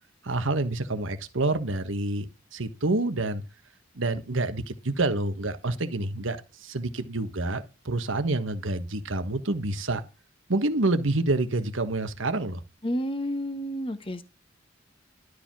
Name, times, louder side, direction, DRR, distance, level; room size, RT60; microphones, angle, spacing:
voice 1, 0.2-2.3 2.5-3.4 3.9-10.0 10.5-12.6, right 2 dB, 70° right, 1.4 m, -28 dB
voice 2, 12.8-14.2, equal, 25° left, 1.1 m, -30 dB
12.0 x 4.9 x 6.1 m
head